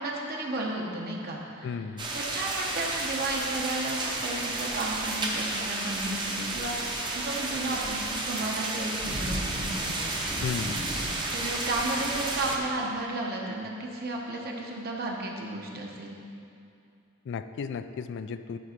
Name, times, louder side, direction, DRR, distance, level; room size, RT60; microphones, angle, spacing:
voice 1, 0.0-1.7 2.1-6.8 7.1-10.0 11.3-16.2, right 2 dB, 50° right, -1 dB, 1.0 m, -33 dB
voice 2, 1.6-2.1 10.4-10.9 17.3-18.6, left 6 dB, 55° left, 10 dB, 0.3 m, -34 dB
sound 1, 2.0-12.6, right 2 dB, 20° right, 0.8 m, -32 dB
11.0 x 3.9 x 5.1 m, 2.6 s
head